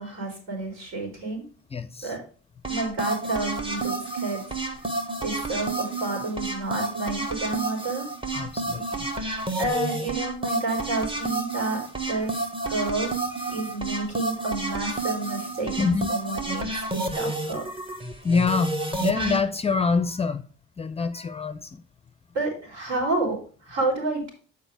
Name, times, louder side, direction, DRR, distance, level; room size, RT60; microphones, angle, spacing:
voice 1, 0.0-1.4 2.0-2.2 2.7-4.4 5.2-8.0 9.6-13.2 13.5-17.6 22.3-24.3, right 2 dB, 70° right, 3.8 m, -30 dB
voice 2, 1.7-2.1 8.3-9.1 12.2-12.3 12.7-12.9 13.3-13.7 15.8-16.1 16.9-17.3 18.2-20.4 20.8-21.8, left 4 dB, 20° left, 0.5 m, -27 dB
sound 1, 2.6-19.4, right 2 dB, 15° right, 1.3 m, -30 dB
7.0 x 4.8 x 5.0 m
supercardioid pair, 80°, 30 cm